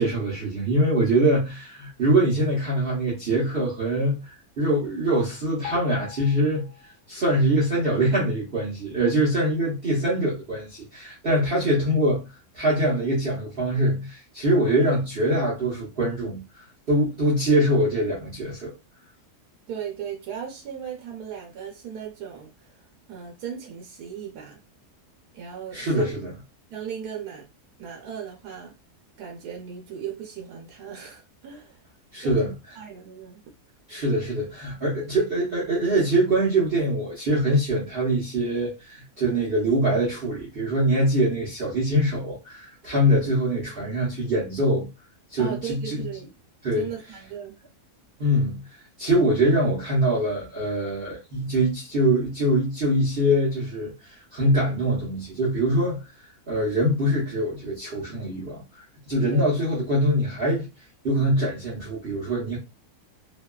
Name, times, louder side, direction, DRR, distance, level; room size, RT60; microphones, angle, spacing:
voice 1, 0.0-6.7 7.1-12.2 12.5-16.4 16.9-18.7 25.7-26.3 32.1-32.5 33.9-44.9 45.3-46.1 46.6-46.9 48.2-48.6 49.0-56.0 56.5-60.7 61.0-62.6, right 1 dB, 50° right, 0.8 m, -23 dB
sound 1, 5.6-7.3 7.5-7.8, left 8 dB, 75° left, 1.0 m, -42 dB
voice 2, 19.7-24.6 25.3-26.2 26.7-27.5 27.8-28.7 29.2-31.8 32.2-33.4 45.4-46.3 46.7-47.6 59.3-59.4, right 8 dB, 80° right, 1.2 m, -37 dB
2.9 x 2.3 x 2.2 m
omnidirectional pair, 1.7 m